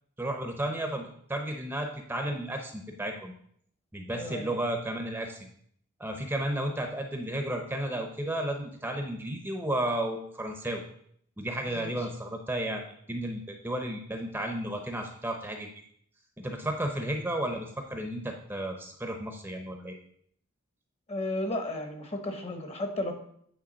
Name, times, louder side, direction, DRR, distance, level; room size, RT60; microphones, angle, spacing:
voice 1, 0.2-3.3 3.9-5.5 6.0-10.8 11.4-12.8 13.1-15.7 16.4-20.0, right 1 dB, 10° right, 4 dB, 0.7 m, -33 dB
voice 2, 4.1-4.5 11.7-11.9 21.1-23.1, left 1 dB, 30° left, 5 dB, 1.1 m, -33 dB
8.6 x 3.5 x 6.3 m, 0.65 s
head